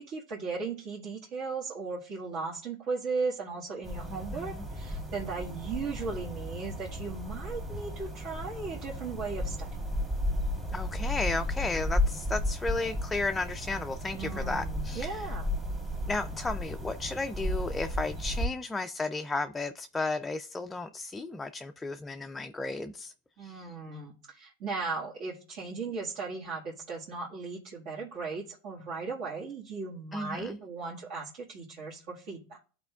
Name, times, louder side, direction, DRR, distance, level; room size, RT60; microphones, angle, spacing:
voice 1, 0.0-9.7 14.1-15.5 23.4-32.6, right 4 dB, 55° right, 1.6 m, -37 dB
sound 1, 3.8-18.5, left 1 dB, 20° right, 2.0 m, -34 dB
voice 2, 4.1-4.6 10.7-15.3 16.1-23.1 23.4-23.7 30.1-30.6, left 3 dB, 10° left, 0.4 m, -34 dB
12.5 x 4.3 x 2.3 m
supercardioid pair, 115°, 0 cm